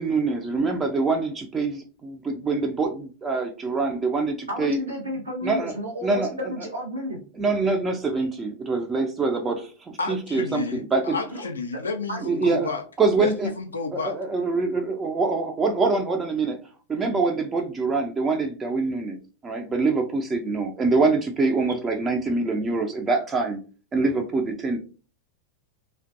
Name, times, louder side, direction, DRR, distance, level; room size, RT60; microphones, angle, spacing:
voice 1, 0.0-4.8 5.4-5.7 6.0-6.3 7.4-11.2 12.2-12.7 13.0-13.5 14.0-16.6 16.9-23.6 23.9-24.8, right 3 dB, 20° right, 0.3 m, -25 dB
voice 2, 4.5-7.2 11.3-11.5 12.1-12.2, equal, 80° right, 0.6 m, -32 dB
voice 3, 10.0-12.8 13.2-14.1, left 4 dB, 75° left, 0.4 m, -31 dB
2.4 x 2.1 x 2.5 m
figure-of-eight pair, 90°, 0 cm